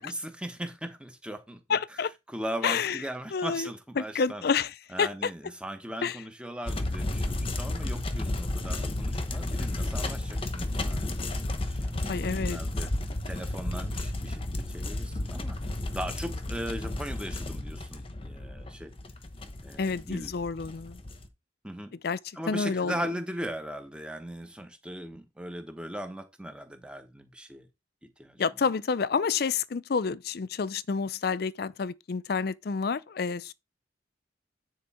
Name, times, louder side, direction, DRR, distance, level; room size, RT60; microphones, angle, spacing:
voice 1, 0.0-1.8 2.3-4.4 4.9-11.1 11.6-12.9 13.2-15.6 15.9-18.9 19.6-20.3 21.6-21.9 22.3-27.7 28.2-28.4, equal, 5° right, 1.1 m, -38 dB
voice 2, 1.7-2.1 2.6-3.0 3.3-3.7 4.0-5.3 6.0-6.2 12.1-12.6 19.8-21.0 22.0-22.2 22.5-22.9 28.4-33.5, left 5 dB, 55° left, 0.5 m, -29 dB
sound 1, 6.7-21.3, left 1 dB, 30° left, 1.0 m, -32 dB
9.5 x 4.5 x 4.3 m
head